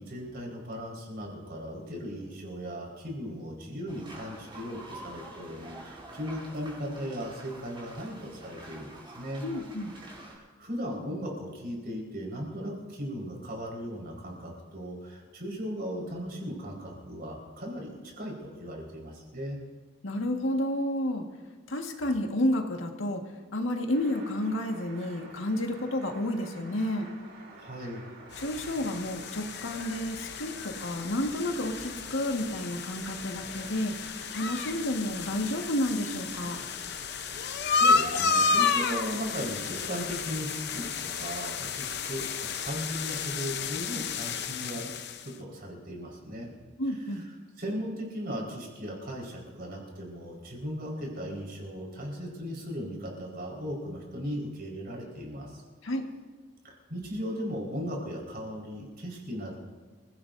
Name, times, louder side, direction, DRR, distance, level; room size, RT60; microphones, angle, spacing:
voice 1, 0.0-9.4 10.3-19.6 27.6-28.1 37.7-44.9 45.2-46.5 47.6-55.6 56.6-59.6, equal, 50° right, -1 dB, 4.7 m, -37 dB
sound 1, 3.9-10.3, right 2 dB, 25° right, 4.4 m, -47 dB
voice 2, 9.4-9.9 20.0-21.2 21.7-23.2 23.5-27.1 28.4-33.9 34.3-36.6 46.8-47.2 55.8-56.1, left 1 dB, 80° left, 2 dB, 1.7 m, -30 dB
sound 2, 23.9-43.6, right 2 dB, 75° right, 3.9 m, -49 dB
sound 3, 28.3-45.3, left 5 dB, 55° left, 0.8 m, -32 dB
27.5 x 16.5 x 2.7 m, 1.4 s
head